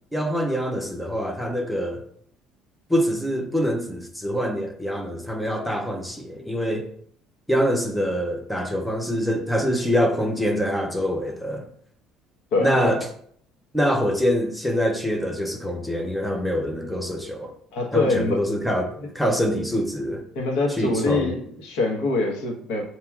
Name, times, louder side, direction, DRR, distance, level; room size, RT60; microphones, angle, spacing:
voice 1, 0.1-2.0 2.9-6.9 7.5-11.7 12.6-13.1 13.7-17.5 17.9-20.2 20.8-21.3, equal, ahead, 0.5 m, -25 dB
voice 2, 12.5-13.0 17.7-18.4 19.0-19.1 20.3-22.8, left 3 dB, 75° left, 1.0 m, -24 dB
7.1 x 2.9 x 2.3 m
cardioid pair, 155°, 0 cm